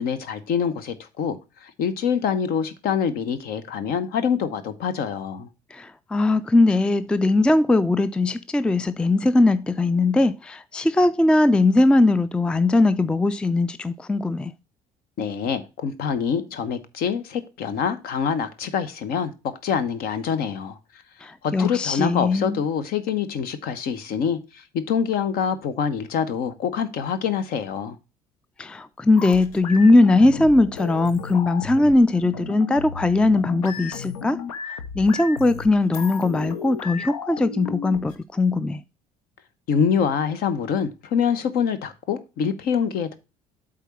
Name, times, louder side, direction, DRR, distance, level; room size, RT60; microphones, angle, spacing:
voice 1, 0.0-5.5 15.2-20.8 21.4-28.0 39.7-43.1, left 7 dB, 55° left, 1.0 m, -25 dB
voice 2, 5.7-14.5 21.2-22.6 28.6-38.8, left 2 dB, 5° left, 0.4 m, -20 dB
sound 1, 29.2-38.2, left 6 dB, 75° left, 0.8 m, -35 dB
8.1 x 3.8 x 5.7 m
figure-of-eight pair, 55°, 19 cm